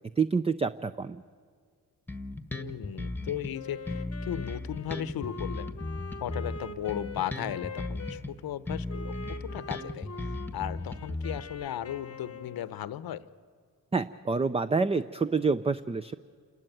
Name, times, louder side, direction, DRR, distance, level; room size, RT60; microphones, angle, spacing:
voice 1, 0.2-1.2 13.9-16.1, right 4 dB, 15° right, 12 dB, 0.4 m, -27 dB
Bass guitar, 2.1-3.5 3.9-8.3 8.7-11.7, left 2 dB, 5° left, 1.3 m, -36 dB
voice 2, 2.5-5.7 6.2-13.2, left 11 dB, 70° left, 15 dB, 0.8 m, -36 dB
Wind instrument woodwind instrument, 3.5-8.2 8.9-12.8, left 4 dB, 40° left, 0.9 m, -44 dB
28.0 x 12.0 x 9.1 m, 2.1 s
cardioid pair, 70°, 38 cm